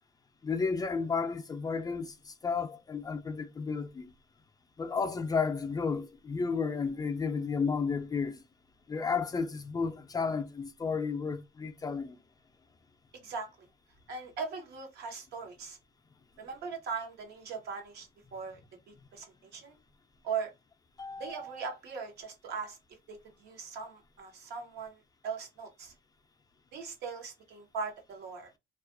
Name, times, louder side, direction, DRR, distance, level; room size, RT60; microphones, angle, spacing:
voice 1, 0.4-4.1 4.8-8.4 8.9-12.2 21.0-21.6, left 5 dB, 20° left, 0.3 m, -32 dB
voice 2, 13.2-13.7 14.1-15.8 16.4-18.6 18.9-19.8 20.2-20.5 21.2-22.8 23.1-25.9 26.7-28.5, right 5 dB, 75° right, 0.8 m, -40 dB
2.3 x 2.2 x 2.5 m
cardioid pair, 110°, 17 cm